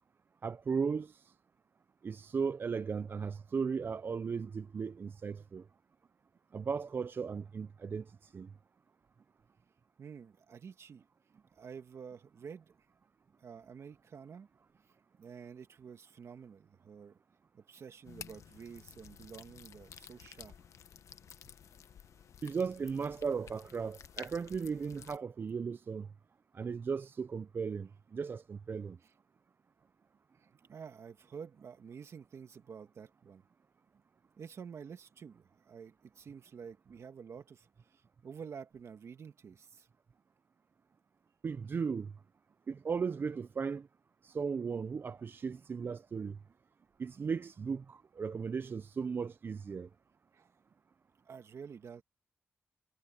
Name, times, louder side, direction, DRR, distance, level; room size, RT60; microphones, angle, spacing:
voice 1, 0.4-1.2 2.0-5.6 6.5-8.1 8.3-8.5 22.4-26.1 26.5-29.0 41.4-42.1 42.7-43.9 44.2-46.4 47.0-49.9, right 5 dB, 45° right, 0.4 m, -36 dB
voice 2, 10.0-11.0 11.5-12.7 13.4-14.5 15.2-17.2 17.5-20.5 29.0-29.1 30.3-33.4 34.4-39.9 50.3-50.5 51.3-52.0, right 6 dB, 65° right, 2.1 m, -49 dB
sound 1, 18.0-25.2, left 8 dB, 80° left, 1.0 m, -53 dB
cardioid pair, 85°, 5 cm